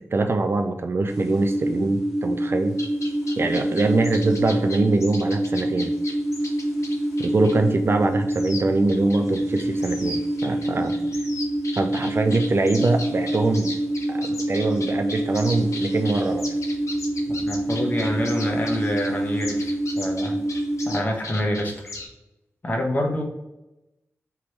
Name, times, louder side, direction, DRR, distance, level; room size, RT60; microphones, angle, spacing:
voice 1, 0.1-2.8 3.4-5.9 7.2-10.9 11.8-13.8 14.1-16.4, right 3 dB, 45° right, 5 dB, 0.4 m, -23 dB
sound 1, 1.1-20.9, right 1 dB, ahead, 1.4 m, -26 dB
sound 2, 2.7-22.1, left 2 dB, 65° left, 0.9 m, -38 dB
voice 2, 17.4-20.4 20.8-21.9 22.6-23.2, equal, 30° left, 0 dB, 1.2 m, -27 dB
3.5 x 3.0 x 4.4 m, 0.96 s
wide cardioid pair, 70°, 5 cm